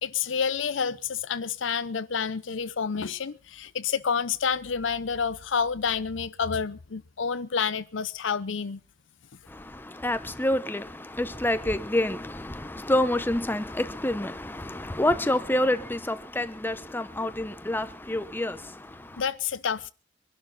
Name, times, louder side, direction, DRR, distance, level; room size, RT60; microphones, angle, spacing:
voice 1, 0.0-8.8 19.2-19.9, left 6 dB, 75° left, 0.7 m, -29 dB
voice 2, 9.5-19.2, left 1 dB, 10° left, 0.8 m, -28 dB
23.5 x 11.5 x 4.0 m
head